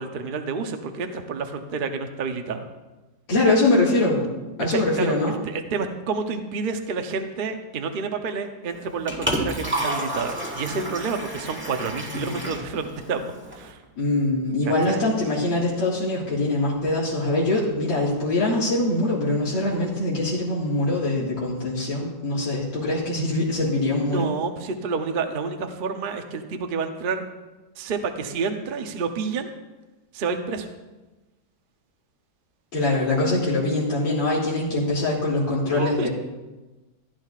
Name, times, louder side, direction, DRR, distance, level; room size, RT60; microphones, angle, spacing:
voice 1, 0.0-2.7 4.7-5.1 5.4-13.8 14.7-15.0 24.0-27.2 27.8-29.5 30.1-30.7 35.7-36.1, right 4 dB, 50° right, 6 dB, 0.6 m, -29 dB
voice 2, 3.3-4.3 4.6-5.3 12.2-12.4 14.0-24.3 32.7-36.1, left 2 dB, 85° left, -7 dB, 2.7 m, -23 dB
Liquid, 8.7-13.7, right 1 dB, 10° right, 1.0 m, -31 dB
15.5 x 10.5 x 2.4 m, 1.1 s
omnidirectional pair, 2.0 m